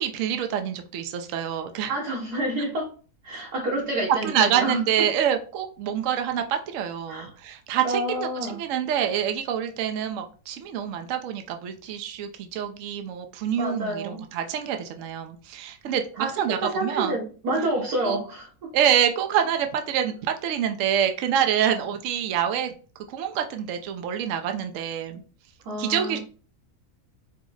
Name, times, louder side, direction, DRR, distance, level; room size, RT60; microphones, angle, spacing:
voice 1, 0.0-1.9 4.2-17.2 18.0-18.2 18.7-22.7 23.1-25.2 25.8-26.2, right 9 dB, 70° right, 6 dB, 0.9 m, -26 dB
voice 2, 1.9-2.9 3.2-5.1 7.1-7.3 7.8-8.6 13.6-14.2 16.2-18.7 25.6-26.2, right 2 dB, 85° right, -2 dB, 2.1 m, -28 dB
4.8 x 2.0 x 3.7 m, 0.36 s
omnidirectional pair, 1.6 m